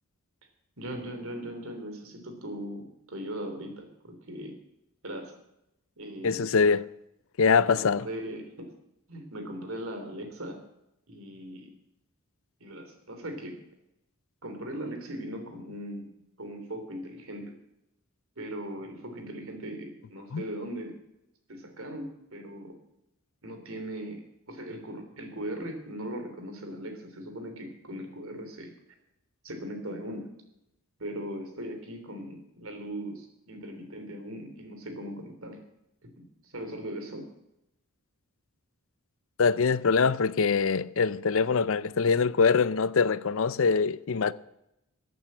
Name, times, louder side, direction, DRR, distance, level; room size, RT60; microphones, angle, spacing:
voice 1, 0.8-4.6 5.0-5.3 6.0-6.4 7.6-8.7 9.1-10.6 11.1-11.7 12.6-13.6 14.4-16.1 16.4-17.5 18.4-20.9 21.5-22.8 23.4-24.2 24.5-28.7 29.4-30.3 31.0-35.6 36.0-37.3, right 1 dB, 65° right, 3.3 m, -39 dB
voice 2, 6.2-6.9 7.4-8.1 20.3-20.4 39.4-44.3, left 5 dB, 65° left, 0.5 m, -23 dB
14.5 x 9.1 x 7.4 m
head